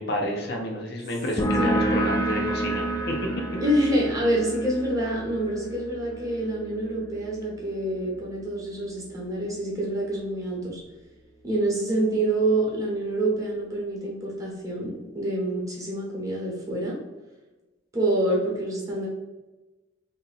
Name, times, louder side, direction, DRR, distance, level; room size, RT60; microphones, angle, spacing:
voice 1, 0.0-3.1, equal, 55° left, 0 dB, 0.7 m, -30 dB
sound 1, 1.4-8.6, right 1 dB, 20° left, 0.4 m, -30 dB
voice 2, 3.6-10.8 11.4-17.0 17.9-19.1, right 1 dB, 15° right, -4 dB, 1.0 m, -27 dB
2.9 x 2.7 x 4.0 m, 1.1 s
head